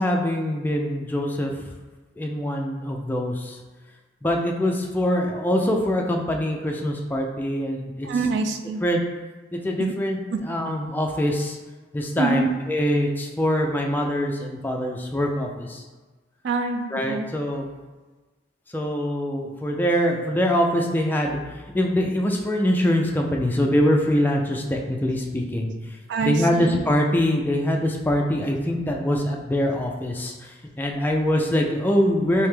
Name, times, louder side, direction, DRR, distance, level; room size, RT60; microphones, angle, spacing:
voice 1, 0.0-1.5 2.2-3.6 4.2-8.1 8.8-9.0 9.5-10.2 10.4-11.6 11.9-15.8 16.9-17.7 18.7-21.4 21.7-25.7 26.2-32.5, equal, 10° left, 0 dB, 0.3 m, -23 dB
voice 2, 8.0-8.8 9.8-9.9 10.3-10.4 12.2-12.5 16.4-17.3 26.1-26.8, right 4 dB, 70° right, 7 dB, 0.3 m, -25 dB
3.4 x 2.7 x 3.3 m, 1.3 s
head